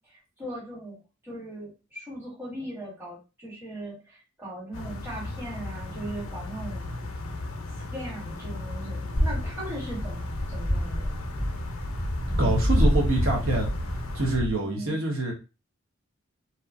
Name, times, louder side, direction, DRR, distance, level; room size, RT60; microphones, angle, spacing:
voice 1, 0.4-1.0 1.2-6.9 7.9-11.2 14.6-15.0, right 1 dB, 10° right, -6 dB, 1.2 m, -38 dB
sound 1, 4.7-14.4, left 2 dB, 90° left, 0.5 m, -36 dB
sound 2, 9.1-14.5, equal, 50° right, 1.2 m, -27 dB
voice 2, 12.4-13.7 14.1-15.3, right 2 dB, 80° right, -1 dB, 0.9 m, -26 dB
2.8 x 2.2 x 2.4 m, 0.30 s
head